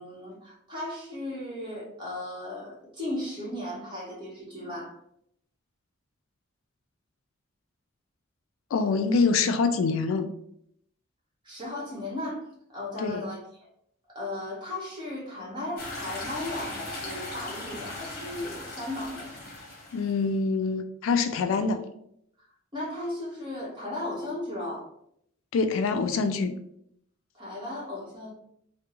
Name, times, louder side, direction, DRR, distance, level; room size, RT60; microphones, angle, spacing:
voice 1, 0.0-5.0 11.4-13.7 14.1-19.3 22.7-24.9 27.3-28.3, left 1 dB, 20° right, -5 dB, 1.1 m, -36 dB
voice 2, 8.7-10.3 13.0-13.3 19.9-21.8 25.5-26.6, left 4 dB, 75° left, 8 dB, 0.3 m, -25 dB
sound 1, 15.8-20.3, left 2 dB, 45° left, 0.9 m, -38 dB
3.5 x 2.1 x 2.9 m, 0.72 s
head